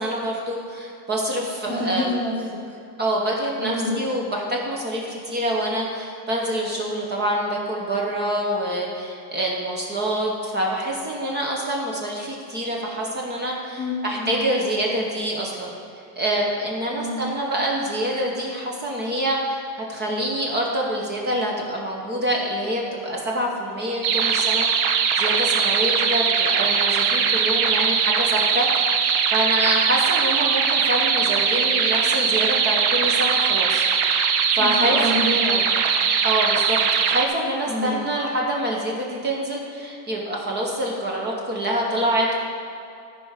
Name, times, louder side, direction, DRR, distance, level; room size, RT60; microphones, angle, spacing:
voice 1, 0.0-2.1 3.0-15.7 16.2-28.7 29.3-34.3 34.5-35.0 36.2-42.4, right 1 dB, 20° right, -2 dB, 1.0 m, -26 dB
voice 2, 1.7-2.8 3.6-4.0 13.8-14.4 16.9-17.2 34.6-35.8 37.7-38.0, left 1 dB, 5° left, -5 dB, 0.9 m, -28 dB
sound 1, 24.0-37.3, right 6 dB, 50° right, 0.8 m, -21 dB
13.5 x 4.9 x 5.7 m, 2.5 s
cardioid pair, 170°, 48 cm